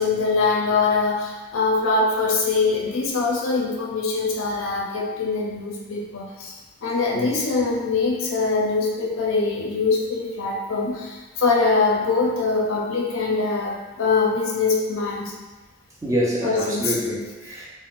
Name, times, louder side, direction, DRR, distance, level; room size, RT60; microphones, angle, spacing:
voice 1, 0.0-6.5 6.8-15.3 16.4-16.9, left 4 dB, 60° left, -2 dB, 0.4 m, -23 dB
voice 2, 16.0-17.7, equal, 15° right, -6 dB, 0.4 m, -26 dB
3.6 x 2.1 x 2.4 m, 1.2 s
head